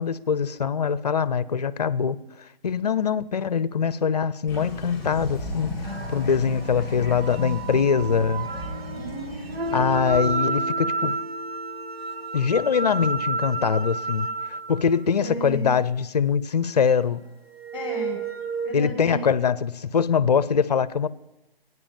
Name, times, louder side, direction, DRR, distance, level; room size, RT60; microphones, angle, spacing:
voice 1, 0.0-2.2 2.6-8.5 9.7-11.1 12.3-17.2 18.7-21.1, left 6 dB, 40° left, 0.7 m, -23 dB
sound 1, 4.5-10.3, left 2 dB, 10° left, 4.8 m, -35 dB
sound 2, 5.8-15.0 17.5-18.7, right 3 dB, 85° right, 1.7 m, -31 dB
voice 2, 8.9-9.8 15.2-15.8 17.7-18.2 18.6-19.4, right 1 dB, 5° right, 4.9 m, -35 dB
19.0 x 9.6 x 7.4 m
hypercardioid pair, 165°, 30 cm